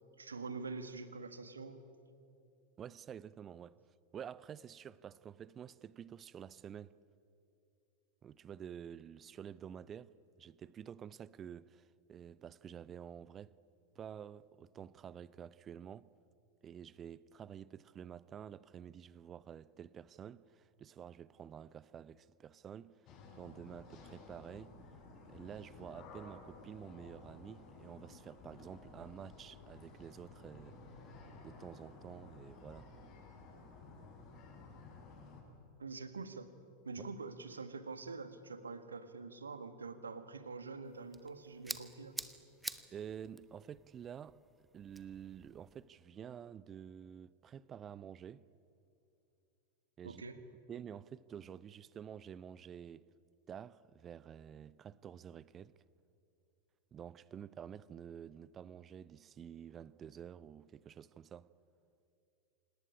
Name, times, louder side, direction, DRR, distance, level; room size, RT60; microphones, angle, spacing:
voice 1, 0.2-1.8 35.8-36.5 36.8-42.2 50.0-50.4, right 4 dB, 75° right, 1.8 m, -45 dB
voice 2, 2.8-3.8 4.1-6.9 8.2-10.1 10.4-13.6 14.0-16.1 16.6-23.0 23.4-24.8 25.3-30.7 31.4-32.9 42.9-44.4 44.7-48.4 50.0-50.2 50.7-53.0 53.5-55.8 56.9-61.5, right 8 dB, 25° right, 0.6 m, -50 dB
sound 1, 23.1-35.4, left 3 dB, 35° left, 6.2 m, -55 dB
sound 2, 40.9-45.9, right 2 dB, 5° right, 1.1 m, -48 dB
27.0 x 18.5 x 9.9 m
figure-of-eight pair, 90°, 0 cm